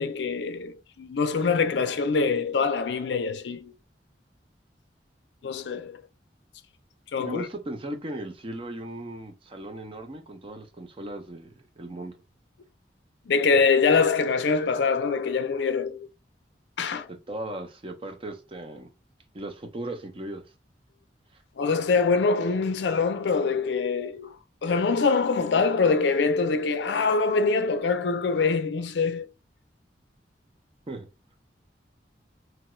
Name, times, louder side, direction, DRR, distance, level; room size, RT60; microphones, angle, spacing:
voice 1, 0.0-3.7 5.4-6.0 7.1-7.5 13.3-16.1 16.8-17.1 21.6-24.3 24.6-29.3, left 4 dB, 70° left, 0.4 m, -24 dB
voice 2, 7.2-11.5 11.8-12.1 17.1-18.9 19.3-20.4 30.9-31.1, right 1 dB, 30° right, 0.5 m, -37 dB
2.9 x 2.3 x 3.0 m
head